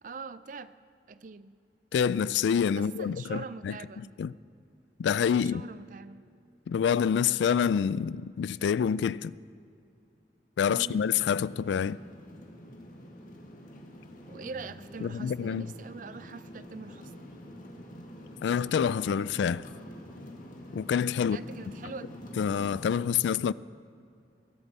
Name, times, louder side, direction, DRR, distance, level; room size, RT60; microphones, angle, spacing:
voice 1, 0.0-0.7 1.1-1.5 2.8-4.1 5.4-6.2 10.7-11.1 14.3-17.1 21.2-22.1, right 4 dB, 45° right, 0.4 m, -43 dB
voice 2, 1.9-3.7 4.2-4.3 5.0-5.6 6.7-9.3 10.6-12.0 15.0-15.7 18.4-19.7 20.7-21.4 22.4-23.5, left 7 dB, 85° left, 0.3 m, -27 dB
sound 1, 10.7-23.0, equal, 50° left, 1.8 m, -46 dB
21.5 x 11.5 x 4.2 m
head